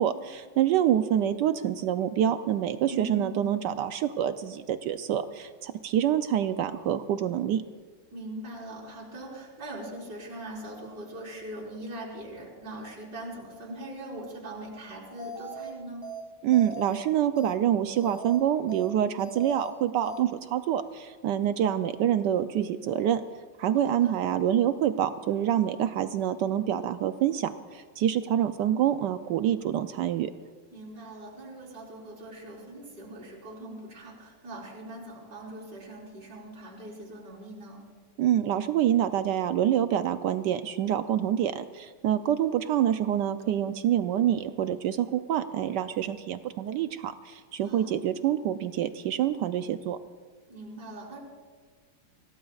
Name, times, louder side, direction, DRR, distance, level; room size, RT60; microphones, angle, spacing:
voice 1, 0.0-7.6 16.4-23.2 23.6-30.3 38.2-50.0, right 10 dB, 75° right, 10 dB, 1.0 m, -26 dB
voice 2, 2.9-3.5 8.1-16.1 23.8-24.2 30.7-37.8 47.6-48.1 50.5-51.2, right 1 dB, 55° right, -5 dB, 4.8 m, -41 dB
sound 1, 15.2-15.7 16.0-16.2 16.5-17.0 17.4-17.5 17.9-18.4 18.7-18.9 19.2-19.7 20.0-20.2, right 2 dB, 15° right, 2.4 m, -39 dB
26.0 x 17.0 x 2.4 m, 1.5 s
omnidirectional pair, 2.3 m